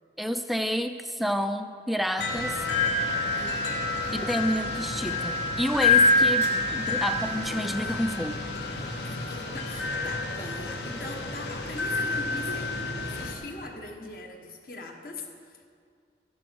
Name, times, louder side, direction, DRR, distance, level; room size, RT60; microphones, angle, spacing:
voice 1, 0.2-2.6 4.1-8.4, equal, ahead, 8 dB, 0.3 m, -29 dB
sound 1, 2.2-13.3, left 2 dB, 70° left, 1.4 m, -27 dB
voice 2, 3.4-3.8 9.0-12.7 13.0-15.6, left 2 dB, 50° left, 2 dB, 1.3 m, -41 dB
13.5 x 11.0 x 4.7 m, 2.2 s
head